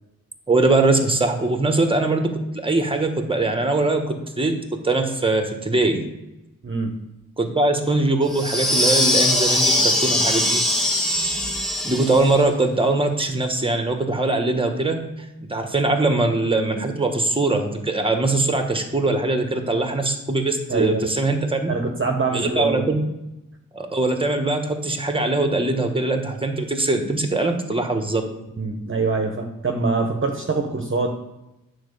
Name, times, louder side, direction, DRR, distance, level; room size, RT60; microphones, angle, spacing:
voice 1, 0.5-6.0 7.4-10.6 11.8-15.0 15.5-21.7 22.3-23.0 23.7-28.2, right 2 dB, 15° right, 5 dB, 1.3 m, -22 dB
sound 1, 8.3-12.3, left 1 dB, ahead, 2.3 m, -21 dB
voice 2, 20.7-21.1 21.7-22.9 28.6-31.1, right 3 dB, 35° right, 3 dB, 1.1 m, -24 dB
9.3 x 4.2 x 6.8 m, 0.95 s
wide cardioid pair, 85°, 33 cm